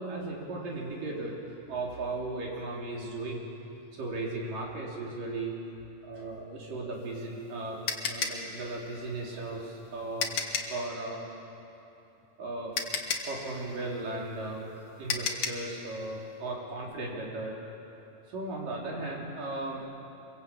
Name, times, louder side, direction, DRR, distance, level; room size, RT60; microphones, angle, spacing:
voice 1, 0.0-1.4 1.7-3.5 3.9-5.5 6.0-10.4 10.7-11.3 12.4-12.8 13.3-17.6 18.3-19.9, right 2 dB, 75° right, -2 dB, 5.4 m, -36 dB
sound 1, 7.0-10.8 12.2-12.3 12.7-15.7, left 5 dB, 50° left, 2.2 m, -33 dB
25.5 x 22.5 x 8.7 m, 2.8 s
omnidirectional pair, 3.8 m